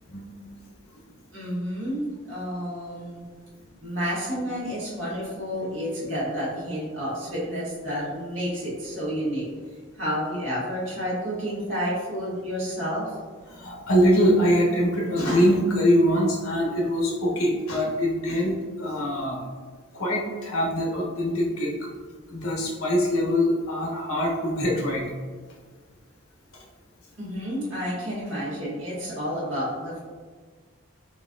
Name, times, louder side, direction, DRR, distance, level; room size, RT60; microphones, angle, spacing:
voice 1, 0.1-0.7 13.5-19.4 19.9-21.7 22.3-25.1, equal, 85° left, -2 dB, 0.9 m, -23 dB
voice 2, 1.3-3.2 3.8-9.4 9.9-13.1 27.2-30.0, equal, 65° right, -8 dB, 1.5 m, -30 dB
4.1 x 3.0 x 2.5 m, 1.5 s
head